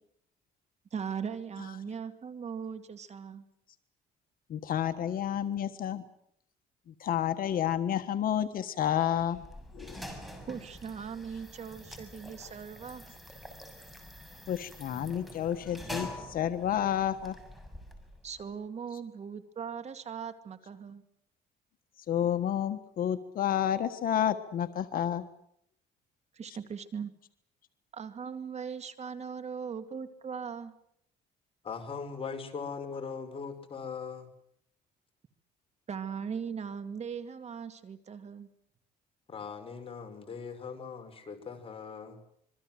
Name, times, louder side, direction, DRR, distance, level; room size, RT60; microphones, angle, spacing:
voice 1, 0.9-3.4 10.5-13.1 18.2-21.0 26.3-27.1 27.9-30.7 35.9-38.5, right 6 dB, 40° right, 10 dB, 2.3 m, -39 dB
voice 2, 4.5-6.0 7.0-9.4 9.7-10.0 14.5-17.4 22.1-25.2, left 10 dB, 55° left, 8 dB, 1.4 m, -30 dB
sound 1, 9.2-18.5, equal, ahead, 6.8 m, -46 dB
voice 3, 31.6-34.3 39.3-42.2, left 5 dB, 35° left, 5 dB, 5.5 m, -40 dB
26.5 x 23.0 x 7.7 m, 0.73 s
cardioid pair, 110°, 17 cm